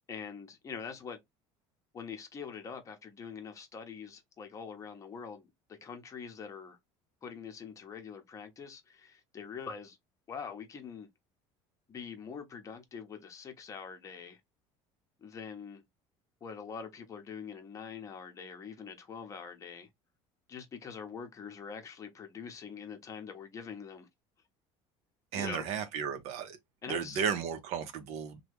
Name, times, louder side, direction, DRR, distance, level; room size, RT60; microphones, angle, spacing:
voice 1, 0.1-1.2 1.9-6.8 7.2-10.0 10.3-11.1 11.9-14.4 15.2-15.8 16.4-19.9 20.5-24.1 25.3-25.7 26.8-27.2, left 6 dB, 25° left, 0.8 m, -44 dB
voice 2, 25.3-26.6 26.9-28.4, right 7 dB, 65° right, 0.7 m, -34 dB
2.9 x 2.2 x 3.4 m
cardioid pair, 145°, 12 cm